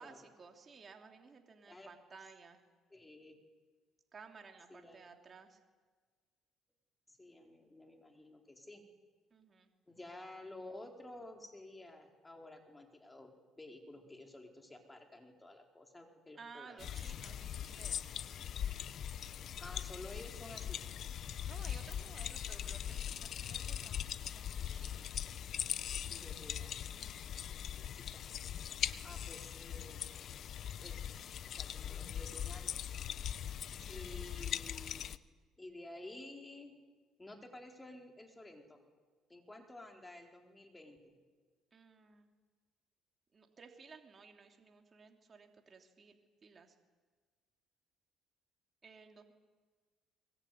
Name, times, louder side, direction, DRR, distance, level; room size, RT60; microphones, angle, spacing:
voice 1, 0.0-2.6 4.1-5.6 9.3-9.7 16.4-18.0 21.4-24.1 24.3-25.2 27.0-27.6 33.8-34.2 41.7-42.3 43.3-46.2 46.4-46.8 48.8-49.3, right 5 dB, 35° right, 3 dB, 3.1 m, -56 dB
voice 2, 2.9-3.4 4.7-5.1 7.1-8.8 9.9-17.0 19.6-20.8 26.1-26.8 27.7-28.3 29.0-30.0 30.8-32.7 33.9-35.0 35.6-36.7 37.2-38.8 39.3-41.1, left 1 dB, 15° left, 3 dB, 4.5 m, -52 dB
sound 1, 16.8-35.2, left 9 dB, 55° left, 0.9 m, -41 dB
24.0 x 22.0 x 9.5 m, 1.5 s
cardioid pair, 105°, 0 cm